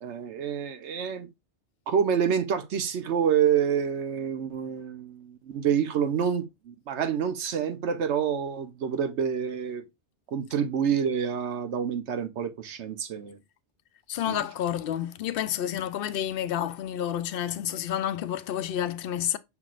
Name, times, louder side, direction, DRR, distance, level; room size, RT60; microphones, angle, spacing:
voice 1, 0.0-1.3 1.9-9.8 10.3-13.4 14.3-14.5, right 8 dB, 80° right, 1.1 m, -27 dB
voice 2, 14.1-19.4, left 10 dB, 65° left, 0.7 m, -30 dB
5.9 x 3.5 x 2.4 m
omnidirectional pair, 1.2 m